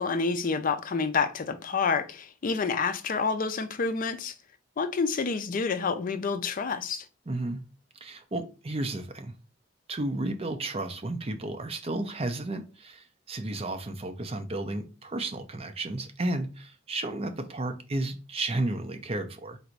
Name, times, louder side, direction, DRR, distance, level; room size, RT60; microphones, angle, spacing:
voice 1, 0.0-4.3 4.8-7.1, left 5 dB, 45° left, 0.4 m, -28 dB
voice 2, 7.3-7.6 8.0-9.3 9.9-19.6, right 2 dB, 30° right, 0.5 m, -33 dB
4.0 x 2.6 x 4.5 m
head